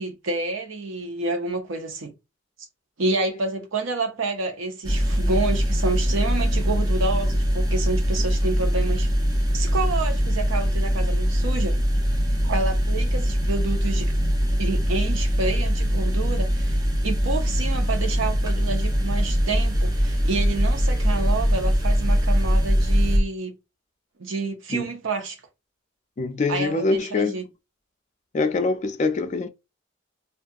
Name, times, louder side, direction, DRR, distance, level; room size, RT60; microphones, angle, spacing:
voice 1, 0.0-2.1 3.0-9.1 9.5-11.8 12.4-14.1 14.6-23.6 24.2-25.4 26.5-27.4, right 3 dB, 75° right, 0.7 m, -29 dB
sound 1, 4.8-23.2, equal, 20° right, 0.5 m, -23 dB
sound 2, 18.1-23.2, equal, 35° right, 1.0 m, -25 dB
voice 2, 26.2-27.4 28.3-29.5, left 3 dB, 35° left, 0.3 m, -24 dB
2.7 x 2.3 x 2.3 m
head